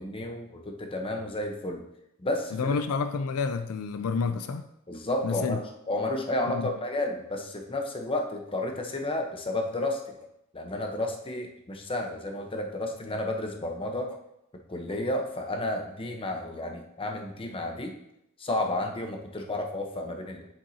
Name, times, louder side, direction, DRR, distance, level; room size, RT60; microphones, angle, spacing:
voice 1, 0.0-1.9 2.2-2.7 4.9-10.3 10.5-14.2 14.7-17.9 18.4-20.5, left 1 dB, 25° left, 3 dB, 0.9 m, -32 dB
voice 2, 2.5-4.6 5.2-5.6 6.5-6.7, left 5 dB, 80° left, 9 dB, 0.4 m, -29 dB
7.6 x 7.3 x 2.8 m, 0.80 s
head